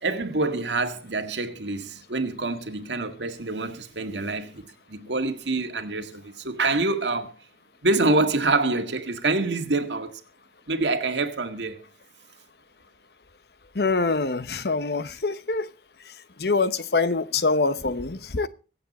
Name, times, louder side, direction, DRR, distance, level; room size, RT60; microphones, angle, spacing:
voice 1, 0.0-4.6 4.9-7.3 7.8-10.1 10.7-11.8, right 3 dB, 90° right, 1.8 m, -26 dB
voice 2, 13.7-15.7 16.4-18.5, left 3 dB, 65° left, 0.9 m, -24 dB
23.0 x 8.1 x 4.2 m
head